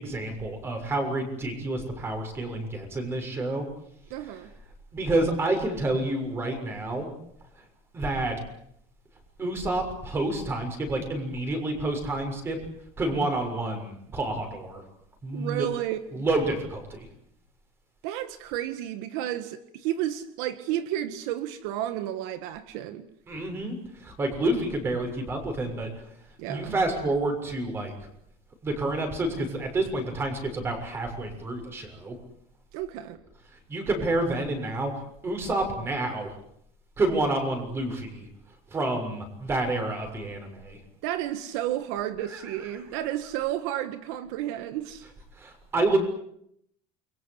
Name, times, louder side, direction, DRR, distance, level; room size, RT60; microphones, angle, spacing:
voice 1, 0.0-3.6 4.2-4.4 4.9-7.1 7.6-7.7 7.9-8.3 9.4-12.6 13.0-14.8 15.2-15.7 16.1-17.1 23.3-25.9 26.4-27.9 28.6-32.2 33.5-34.9 35.2-36.3 37.0-38.3 38.7-40.8 42.3-42.7 45.3-46.0, right 2 dB, 20° right, 5 dB, 6.6 m, -29 dB
voice 2, 4.1-4.5 15.3-16.2 18.0-23.1 26.4-26.7 32.7-33.2 41.0-45.0, right 12 dB, 80° right, 10 dB, 1.7 m, -32 dB
29.5 x 23.0 x 8.3 m, 0.74 s
cardioid pair, 170°, 12 cm